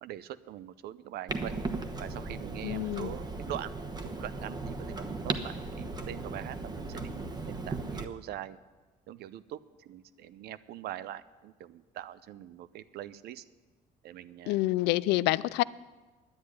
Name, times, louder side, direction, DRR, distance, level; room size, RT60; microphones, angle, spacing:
voice 1, 0.0-1.5 2.0-8.6 9.1-13.4 14.0-14.6, right 12 dB, 70° right, 16 dB, 0.6 m, -43 dB
Clock, 1.3-8.1, right 3 dB, 25° right, 1.1 m, -37 dB
voice 2, 2.6-3.1 14.5-15.6, left 17 dB, 90° left, 19 dB, 0.4 m, -27 dB
10.5 x 8.5 x 9.6 m, 1.3 s
cardioid pair, 110°, 17 cm